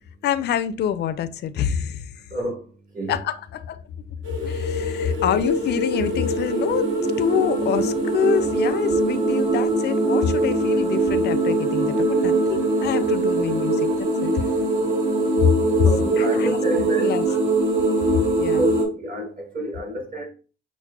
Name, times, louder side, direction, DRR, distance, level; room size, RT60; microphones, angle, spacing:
voice 1, 0.2-2.3 3.1-3.8 4.4-6.9 7.2-14.4 15.4-15.5 16.2-17.2 18.4-18.6, left 9 dB, 60° left, 0.4 m, -26 dB
voice 2, 2.3-2.7 2.9-3.2 5.1-5.2 15.8-17.4 18.6-18.7 18.9-20.3, right 1 dB, 45° right, 1.4 m, -29 dB
sound 1, 4.2-18.8, right 2 dB, 70° right, 1.3 m, -22 dB
5.9 x 2.1 x 2.3 m
cardioid pair, 90°, 20 cm